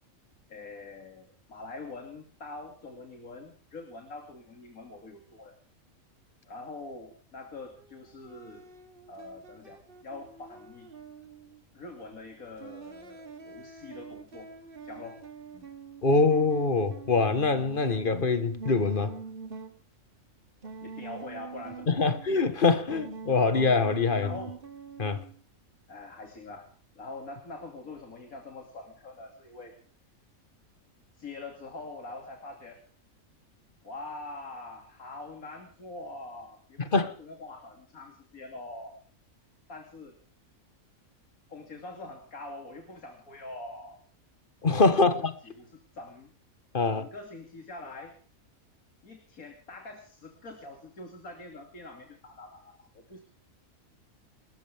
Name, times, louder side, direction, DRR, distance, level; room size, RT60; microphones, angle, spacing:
voice 1, 0.5-5.6 6.4-8.7 9.1-10.9 11.7-14.5 14.8-15.2 15.5-15.7 20.8-22.2 22.9-23.0 24.2-24.5 25.9-26.7 26.9-29.8 31.1-32.8 33.8-39.0 39.7-40.2 41.5-44.0 44.9-46.3 46.8-48.2 49.0-53.2, left 2 dB, 85° left, 3.1 m, -44 dB
sound 1, 7.8-11.6 12.6-19.8 20.6-22.6 22.9-25.4, right 5 dB, 40° right, 1.6 m, -45 dB
voice 2, 16.0-19.2 21.9-24.3 25.0-25.2 36.9-37.1 44.6-45.3 46.7-47.0, left 3 dB, 40° left, 1.6 m, -24 dB
29.0 x 13.5 x 3.6 m
omnidirectional pair, 1.4 m